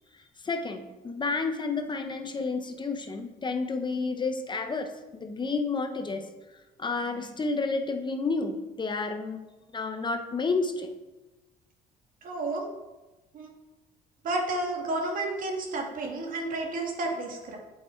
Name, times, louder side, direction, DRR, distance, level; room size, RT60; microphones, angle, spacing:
voice 1, 0.4-6.2 6.8-9.4 9.7-10.9, left 4 dB, 25° left, 6 dB, 1.0 m, -30 dB
voice 2, 12.2-12.7 13.3-13.5 14.2-17.6, right 2 dB, 55° right, 1 dB, 2.3 m, -31 dB
8.2 x 8.0 x 4.6 m, 1.1 s
cardioid pair, 110°, 17 cm